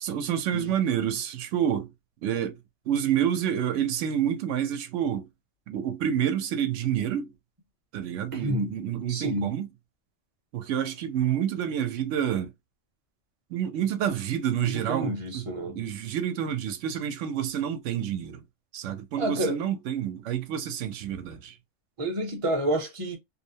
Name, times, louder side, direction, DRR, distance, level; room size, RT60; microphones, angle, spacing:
voice 1, 0.0-1.9 2.2-2.6 2.9-5.3 5.7-7.3 7.9-9.7 10.5-12.5 13.5-18.4 18.7-21.5, right 9 dB, 85° right, 0.9 m, -28 dB
voice 2, 8.3-8.7 9.1-9.5 14.6-15.8 19.2-19.6 22.0-23.2, right 1 dB, 30° right, 0.7 m, -29 dB
2.7 x 2.0 x 2.7 m
omnidirectional pair, 1.2 m